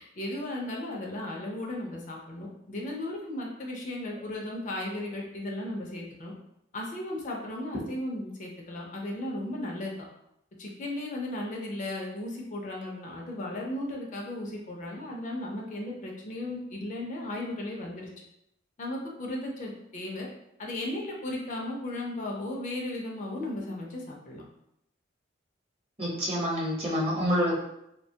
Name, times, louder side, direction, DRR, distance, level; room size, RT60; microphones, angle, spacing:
voice 1, 0.0-6.3 6.7-10.0 10.6-18.1 18.8-20.3 20.6-24.4, left 1 dB, 40° left, -1 dB, 0.4 m, -35 dB
voice 2, 26.0-27.6, equal, 30° right, -5 dB, 0.8 m, -27 dB
2.9 x 2.1 x 2.7 m, 0.81 s
head